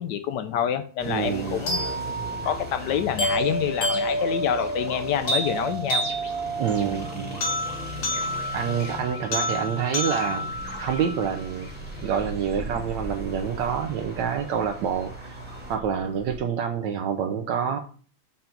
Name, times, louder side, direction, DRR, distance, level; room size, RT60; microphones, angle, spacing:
voice 1, 0.0-1.9 2.4-6.1, left 9 dB, 70° left, 10 dB, 1.1 m, -27 dB
sound 1, 1.0-15.8, left 1 dB, 5° right, 1.1 m, -39 dB
voice 2, 1.0-1.6 6.6-7.4 7.9-8.0 8.5-10.5 10.8-11.7 12.0-15.4 15.7-17.8, right 7 dB, 75° right, 5 dB, 1.2 m, -27 dB
sound 2, 1.7-11.7, right 1 dB, 55° left, 2.0 m, -29 dB
sound 3, 10.5-16.4, right 3 dB, 55° right, 1.1 m, -40 dB
5.7 x 3.9 x 5.8 m, 0.42 s
omnidirectional pair, 2.1 m